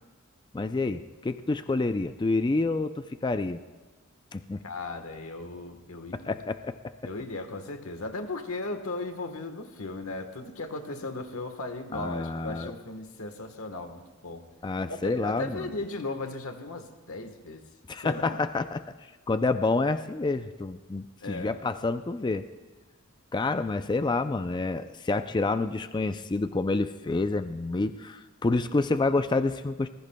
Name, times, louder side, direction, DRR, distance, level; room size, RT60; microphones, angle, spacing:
voice 1, 0.5-3.6 4.3-4.6 6.1-6.8 11.9-12.7 14.6-15.7 17.9-18.8 19.3-22.5 23.3-29.9, left 3 dB, 20° left, 10 dB, 0.4 m, -28 dB
voice 2, 4.6-6.2 7.0-14.4 14.9-17.6 18.0-18.4 21.2-21.5, left 2 dB, 80° left, 7 dB, 1.3 m, -36 dB
25.0 x 20.5 x 2.2 m, 1.2 s
head